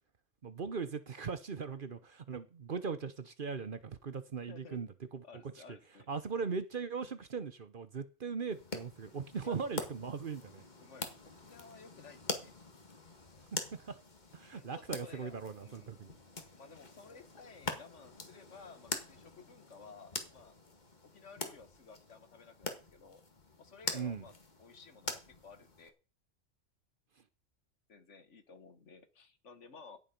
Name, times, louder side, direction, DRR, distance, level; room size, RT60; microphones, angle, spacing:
voice 1, 0.4-5.2 6.1-10.6 13.5-14.0 14.3-16.2 23.9-24.2, right 5 dB, 45° right, 13 dB, 1.0 m, -39 dB
voice 2, 4.5-4.8 5.2-6.1 9.4-9.6 10.8-12.5 14.5-16.0 16.5-20.6 21.0-23.2 23.6-24.3 24.6-25.9 27.9-30.0, left 5 dB, 70° left, 10 dB, 1.8 m, -55 dB
sound 1, 8.5-25.9, left 3 dB, 35° left, 1.8 m, -45 dB
17.0 x 7.3 x 5.3 m, 0.35 s
omnidirectional pair, 1.3 m